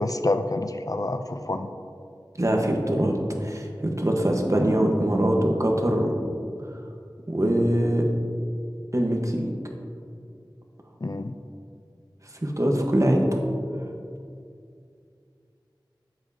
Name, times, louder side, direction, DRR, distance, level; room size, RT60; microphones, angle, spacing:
voice 1, 0.0-1.7 11.0-11.3, left 2 dB, 45° left, 8 dB, 0.4 m, -27 dB
voice 2, 2.4-6.1 7.3-8.1 8.9-9.5 12.4-13.4, right 1 dB, 40° right, 1 dB, 1.1 m, -23 dB
12.0 x 8.0 x 2.8 m, 2.4 s
wide cardioid pair, 40°, 8 cm